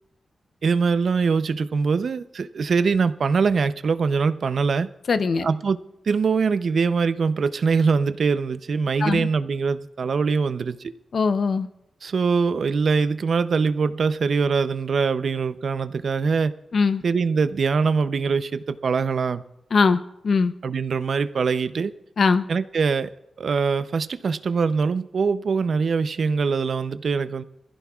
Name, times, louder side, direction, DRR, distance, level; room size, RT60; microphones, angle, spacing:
voice 1, 0.6-4.9 5.4-5.8 6.1-10.8 12.0-16.5 17.0-19.4 20.6-21.9 22.5-23.1 23.4-27.4, right 5 dB, 60° right, 12 dB, 0.6 m, -23 dB
voice 2, 5.1-5.5 9.0-9.3 11.1-11.7 16.7-17.0 19.7-20.5 22.2-22.4, left 4 dB, 55° left, 11 dB, 0.7 m, -21 dB
25.0 x 15.5 x 2.4 m, 0.88 s
wide cardioid pair, 135°, 0 cm